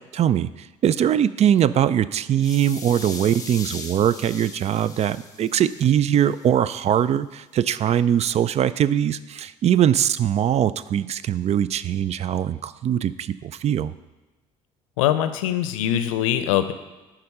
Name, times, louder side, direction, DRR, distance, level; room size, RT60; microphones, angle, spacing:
voice 1, 0.1-13.9, right 10 dB, 40° right, 16 dB, 0.4 m, -21 dB
sound 1, 2.4-6.5, left 3 dB, 20° left, 1.3 m, -39 dB
voice 2, 15.0-16.7, left 11 dB, 85° left, 11 dB, 0.5 m, -22 dB
10.5 x 3.9 x 5.4 m, 1.1 s
hypercardioid pair, 65°, 17 cm